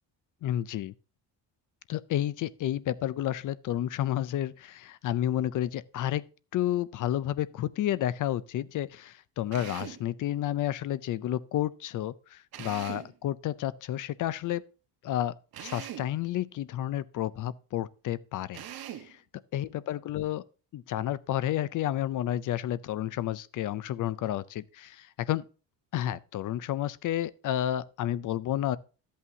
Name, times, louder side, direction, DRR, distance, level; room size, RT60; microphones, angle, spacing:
voice 1, 0.4-0.9 1.9-6.2 6.5-14.6 15.0-15.3 15.6-18.6 19.1-19.2 19.5-20.4 20.7-25.4 25.9-28.8, left 12 dB, 45° left, 0.5 m, -31 dB
Drill, 9.5-10.1 12.5-13.2 15.5-16.1 18.5-19.1, right 11 dB, 50° right, 1.3 m, -41 dB
12.5 x 8.4 x 2.7 m
cardioid pair, 155°, 45 cm